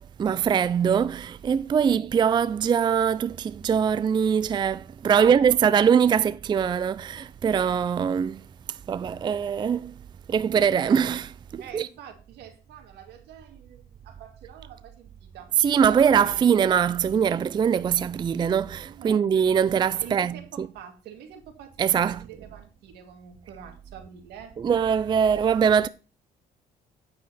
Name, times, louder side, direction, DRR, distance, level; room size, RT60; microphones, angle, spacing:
voice 1, 0.0-8.4 8.7-10.0 10.3-11.9 15.6-20.7 21.8-22.3 24.6-25.9, right 7 dB, 25° right, 0.4 m, -22 dB
voice 2, 5.1-6.0 11.6-16.1 18.8-19.2 20.0-24.6, right 8 dB, 80° right, 2.2 m, -45 dB
9.3 x 7.0 x 4.1 m
cardioid pair, 110°, 17 cm